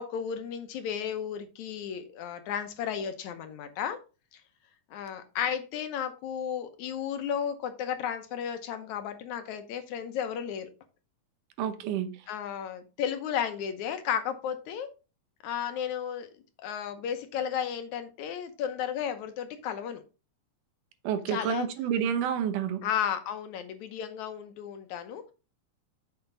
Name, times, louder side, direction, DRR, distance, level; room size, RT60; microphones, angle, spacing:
voice 1, 0.0-4.0 4.9-10.7 12.3-14.9 15.4-16.3 16.6-20.0 21.3-21.7 22.8-25.3, left 8 dB, 75° left, 2.1 m, -33 dB
voice 2, 11.6-12.1 21.0-22.8, right 9 dB, 80° right, 2.4 m, -29 dB
6.8 x 6.8 x 3.9 m
omnidirectional pair, 3.7 m